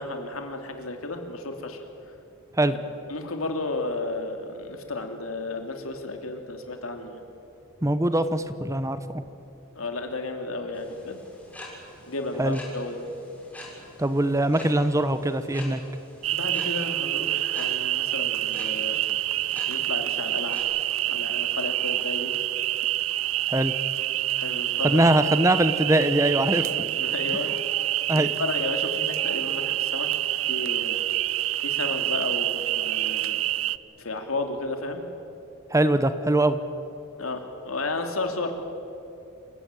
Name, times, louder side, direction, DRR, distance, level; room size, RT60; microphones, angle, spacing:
voice 1, 0.0-1.8 2.7-2.8 3.1-7.2 9.7-11.2 12.1-13.0 16.3-19.0 19.6-20.6 21.1-22.3 24.4-25.0 26.5-27.5 27.8-30.1 30.4-31.0 31.6-33.4 34.0-35.0 37.2-38.5, left 2 dB, 85° left, 5 dB, 2.9 m, -33 dB
voice 2, 7.8-9.2 12.4-12.6 14.0-15.8 23.5-23.7 24.8-26.7 27.3-27.4 28.1-28.3 35.7-36.6, right 1 dB, 15° right, 12 dB, 0.9 m, -22 dB
sound 1, 10.7-20.6, left 1 dB, 10° left, 6.9 m, -46 dB
sound 2, 16.2-33.8, right 14 dB, 70° right, 0.5 m, -27 dB
27.5 x 16.0 x 9.0 m, 2.8 s
head